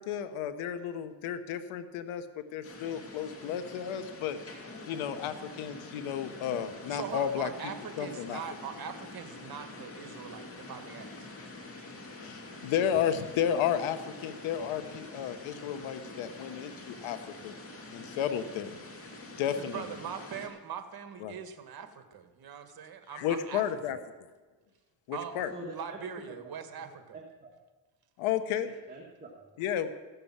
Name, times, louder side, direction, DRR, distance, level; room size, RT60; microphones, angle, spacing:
voice 1, 0.1-2.2 2.5-4.4 4.9-7.5 8.0-8.4 12.2-17.2 17.4-17.5 17.9-18.8 19.4-19.8 21.2-21.3 23.1-24.0 25.1-25.5 28.2-28.7 29.6-29.9, left 9 dB, 80° left, 10 dB, 1.2 m, -32 dB
sound 1, 2.6-20.5, left 2 dB, 30° left, 2.6 m, -46 dB
voice 2, 6.9-11.3 19.5-23.6 25.1-25.4 25.7-27.2, right 7 dB, 50° right, 8 dB, 1.6 m, -42 dB
voice 3, 25.5-26.5 27.1-27.5 28.6-29.6, right 2 dB, 20° right, -2 dB, 2.0 m, -46 dB
15.0 x 6.9 x 7.4 m, 1.3 s
cardioid pair, 100°, 48 cm